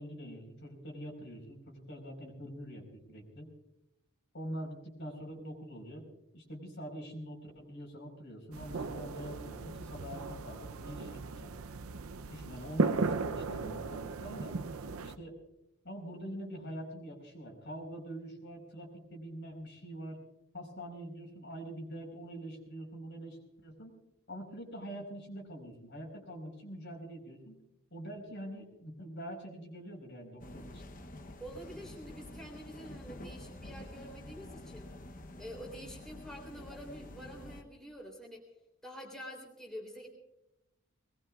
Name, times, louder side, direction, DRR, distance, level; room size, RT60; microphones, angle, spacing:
voice 1, 0.0-3.5 4.3-6.1 6.3-11.5 12.3-14.5 15.0-15.4 15.8-20.2 20.5-23.9 24.3-27.6 27.9-30.8, equal, 55° left, 1 dB, 4.6 m, -44 dB
sound 1, 8.5-15.1, right 3 dB, 75° right, 0.7 m, -36 dB
sound 2, 30.4-37.6, left 1 dB, 40° left, 0.9 m, -48 dB
voice 2, 31.4-34.9 35.4-38.5 38.8-40.1, equal, ahead, -1 dB, 3.5 m, -47 dB
22.0 x 20.5 x 2.4 m, 0.87 s
head